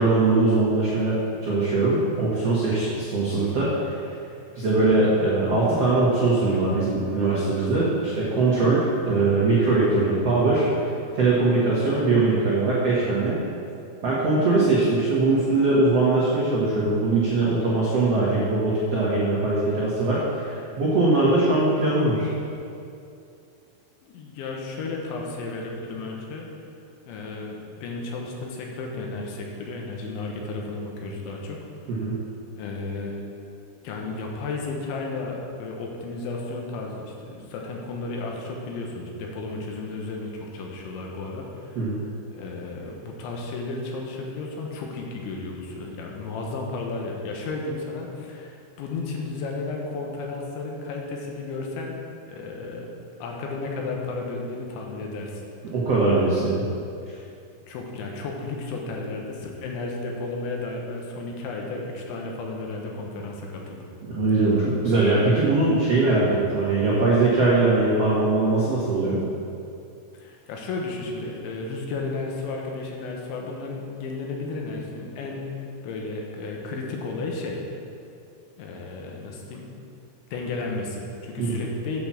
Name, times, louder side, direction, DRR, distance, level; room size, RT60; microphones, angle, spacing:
voice 1, 0.0-4.0 4.5-10.7 11.1-13.4 14.0-22.3 31.9-32.2 41.7-42.0 55.7-56.6 64.1-69.2 81.4-81.6, right 3 dB, 75° right, -7 dB, 1.4 m, -21 dB
voice 2, 24.0-26.5 27.1-31.6 32.6-33.2 33.8-41.8 42.3-52.0 52.3-52.9 53.2-55.4 57.7-63.9 70.1-77.6 78.6-79.7 80.3-82.0, left 3 dB, 80° left, 0 dB, 3.5 m, -33 dB
8.6 x 6.0 x 7.4 m, 2.5 s
omnidirectional pair, 5.3 m